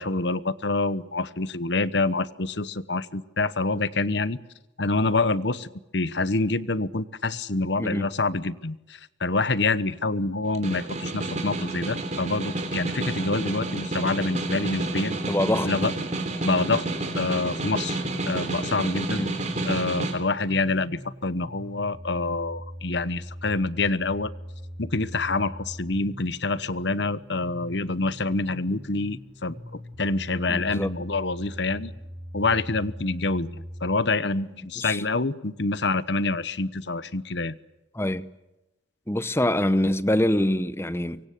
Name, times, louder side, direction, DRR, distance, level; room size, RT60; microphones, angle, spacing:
voice 1, 0.0-4.4 4.8-15.1 15.6-15.9 16.4-16.8 17.1-19.2 19.6-24.3 24.8-31.9 32.3-37.6, left 3 dB, 65° left, 1.1 m, -27 dB
voice 2, 7.8-8.1 15.1-15.7 19.1-19.3 30.5-30.9 34.8-35.0 37.9-38.2 39.1-41.2, left 1 dB, 15° left, 0.9 m, -25 dB
Snare drum, 10.4-20.2, right 2 dB, 40° right, 3.7 m, -30 dB
sound 1, 17.9-33.9, equal, 10° right, 4.4 m, -41 dB
24.5 x 24.0 x 8.4 m
head